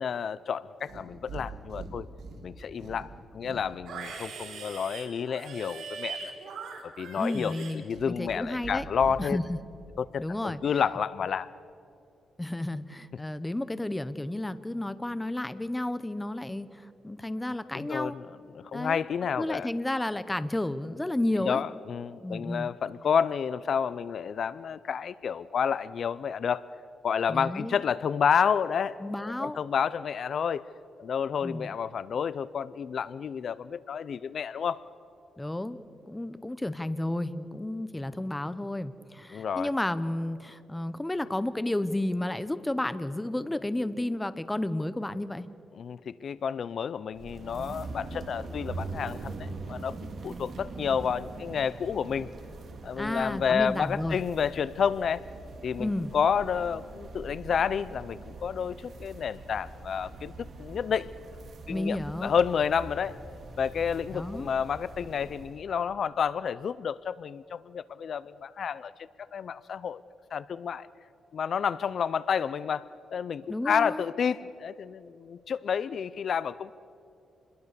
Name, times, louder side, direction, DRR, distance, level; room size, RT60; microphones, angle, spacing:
voice 1, 0.0-2.1 2.4-6.3 6.8-7.5 7.8-9.4 10.0-11.5 17.7-18.3 18.5-19.7 21.5-26.7 27.0-30.6 31.0-34.8 39.3-39.7 45.7-49.9 50.2-52.3 52.8-55.3 55.6-60.3 60.6-61.4 61.7-63.2 63.6-68.9 69.3-70.0 70.3-70.9 71.3-76.7, left 7 dB, 55° left, 17 dB, 0.5 m, -30 dB
Livestock farm animals working animals, 0.8-1.4 1.7-2.4 2.8-8.4 8.6-9.1, right 5 dB, 85° right, 4.3 m, -41 dB
voice 2, 7.2-8.9 9.2-9.6 10.2-10.6 12.4-18.2 18.7-19.0 19.4-21.6 22.2-22.7 27.3-27.8 29.0-29.6 31.4-31.7 35.4-35.8 36.1-45.5 53.0-54.2 55.8-56.1 61.7-62.4 64.1-64.5 73.5-74.0, left 1 dB, 10° left, 13 dB, 0.9 m, -32 dB
sound 1, 47.1-65.7, right 3 dB, 55° right, 2.7 m, -43 dB
28.0 x 22.0 x 6.8 m, 2.7 s
cardioid pair, 130°, 0 cm